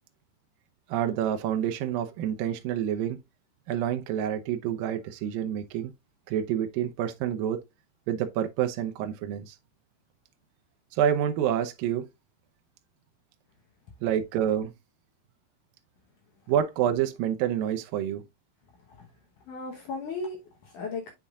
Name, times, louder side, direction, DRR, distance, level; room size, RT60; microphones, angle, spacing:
voice 1, 0.9-3.2 3.7-5.9 6.3-7.6 8.1-9.6 10.9-12.1 14.0-14.7 16.5-18.2, right 10 dB, 80° right, 2.1 m, -28 dB
voice 2, 19.5-21.1, left 3 dB, 70° left, 2.1 m, -36 dB
8.0 x 5.7 x 2.4 m
omnidirectional pair, 4.9 m